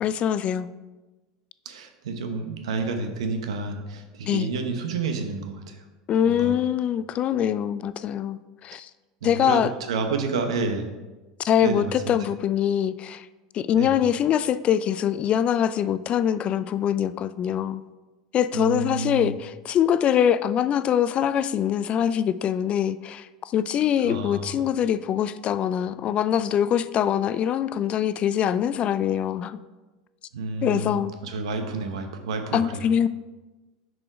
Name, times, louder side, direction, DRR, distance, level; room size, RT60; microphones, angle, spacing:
voice 1, 0.0-0.7 4.3-4.5 6.1-8.9 9.2-9.7 11.4-13.3 13.5-17.8 18.3-29.6 30.6-31.1 32.5-33.1, left 9 dB, 40° left, 15 dB, 0.3 m, -23 dB
voice 2, 1.6-5.8 6.2-6.6 9.2-10.9 11.6-12.1 13.8-13.9 18.5-19.3 24.0-24.7 30.3-32.9, right 4 dB, 85° right, 6 dB, 0.9 m, -30 dB
6.0 x 4.8 x 4.9 m, 1.2 s
supercardioid pair, 105°, 3 cm